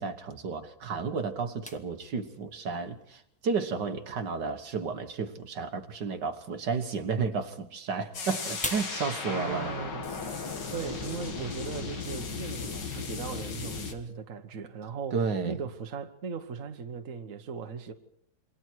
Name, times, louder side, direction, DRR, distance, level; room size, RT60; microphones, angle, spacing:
voice 1, 0.0-9.7 15.1-15.6, right 5 dB, 70° right, 2.0 m, -32 dB
sound 1, 1.6-12.4, left 1 dB, 5° left, 0.9 m, -47 dB
sound 2, 8.1-13.9, left 4 dB, 70° left, 2.8 m, -36 dB
voice 2, 9.3-10.1 10.7-17.9, right 6 dB, 50° right, 1.6 m, -38 dB
27.5 x 24.0 x 4.7 m
omnidirectional pair, 2.0 m